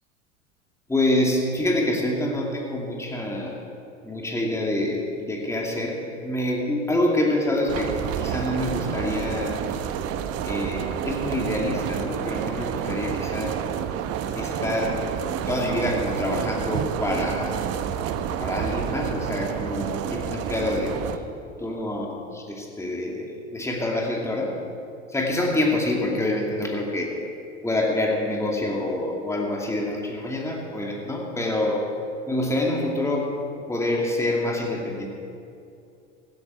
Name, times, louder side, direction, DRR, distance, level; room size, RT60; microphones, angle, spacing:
voice 1, 0.9-3.6 4.0-9.6 10.4-13.6 14.3-15.0 15.5-17.5 18.4-20.9 21.6-23.2 23.5-24.5 25.1-27.1 27.6-31.9 32.3-33.3 33.7-35.1, left 1 dB, 10° left, -1 dB, 2.5 m, -26 dB
sound 1, 7.7-21.2, right 9 dB, 40° right, 1.0 m, -29 dB
17.5 x 15.5 x 4.6 m, 2.7 s
figure-of-eight pair, 80°, 37 cm